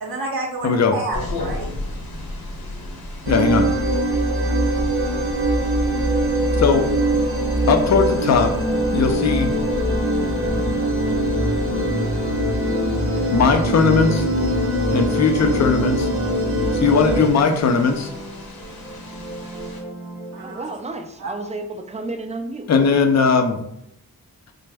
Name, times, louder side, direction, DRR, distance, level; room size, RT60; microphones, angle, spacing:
voice 1, 0.0-1.7 20.3-20.7 21.2-21.3, right 2 dB, 75° right, -1 dB, 0.6 m, -29 dB
voice 2, 0.6-1.0 3.3-3.7 6.6-6.9 7.7-8.6 8.9-9.5 13.3-14.2 14.9-16.1 16.7-18.1 22.7-23.6, left 5 dB, 50° left, 6 dB, 0.5 m, -18 dB
sound 1, 1.1-19.8, left 1 dB, 85° left, 0.7 m, -35 dB
sound 2, 3.2-17.3, right 1 dB, 35° right, 0.7 m, -22 dB
sound 3, 12.6-20.6, equal, ahead, 0.7 m, -37 dB
voice 3, 20.4-22.7, right 2 dB, 20° right, 6 dB, 0.3 m, -31 dB
3.3 x 2.0 x 3.3 m, 0.80 s
wide cardioid pair, 90°, 36 cm